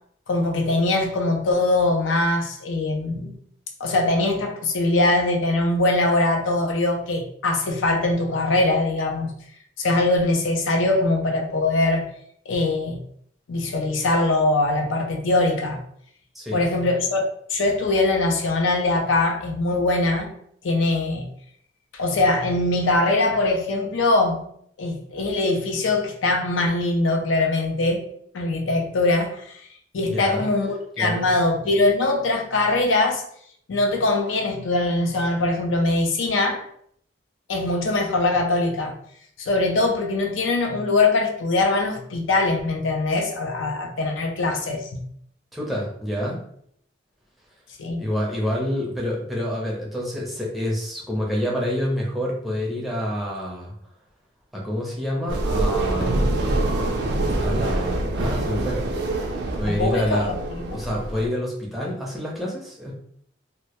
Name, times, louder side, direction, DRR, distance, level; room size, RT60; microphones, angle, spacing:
voice 1, 0.3-3.3 3.8-9.3 9.8-12.1 12.5-13.0 13.5-15.8 16.5-17.2 17.5-20.3 20.6-21.3 21.9-24.4 24.8-28.0 28.3-29.5 29.9-33.2 33.7-36.6 37.5-38.9 39.4-45.0 47.8-48.0 59.7-60.8, left 2 dB, 85° left, 2 dB, 0.4 m, -22 dB
voice 2, 30.0-30.5 31.0-31.3 45.5-46.4 48.0-53.7 54.5-56.5 57.4-58.8 59.6-60.3 60.7-62.9, equal, ahead, -4 dB, 0.5 m, -27 dB
sound 1, 55.3-61.3, right 2 dB, 55° right, 0.3 m, -25 dB
2.1 x 2.0 x 2.8 m, 0.66 s
head